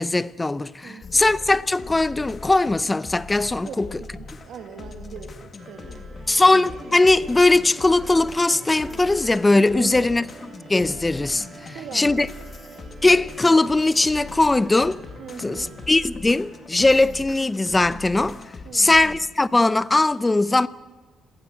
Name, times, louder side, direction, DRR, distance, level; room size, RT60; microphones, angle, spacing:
voice 1, 0.0-3.9 6.3-10.2 10.7-12.3 13.0-15.0 15.4-18.4 18.7-20.7, left 2 dB, 15° left, 0.7 m, -20 dB
voice 2, 0.8-1.3 3.6-6.4 9.7-10.0 11.6-12.5 15.2-15.8 18.6-18.9, right 7 dB, 70° right, 2.2 m, -40 dB
sound 1, 1.0-19.2, left 3 dB, 35° left, 2.0 m, -41 dB
sound 2, 5.6-16.1, right 4 dB, 40° right, 2.4 m, -46 dB
sound 3, 6.4-17.1, right 3 dB, 20° right, 5.7 m, -52 dB
26.5 x 18.5 x 7.7 m
cardioid pair, 135°, 0 cm